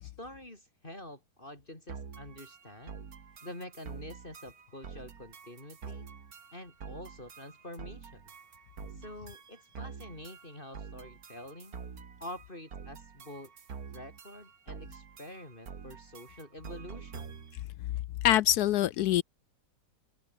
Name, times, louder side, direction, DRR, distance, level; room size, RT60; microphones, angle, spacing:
voice 1, 0.0-3.0 3.4-6.1 6.5-8.2 9.0-11.8 12.2-13.5 13.9-17.4, left 1 dB, 30° left, 5.0 m, -47 dB
sound 1, 1.9-17.6, right 6 dB, 65° right, 2.3 m, -47 dB
voice 2, 18.2-19.2, left 13 dB, 75° left, 1.1 m, -25 dB
open air
omnidirectional pair, 1.7 m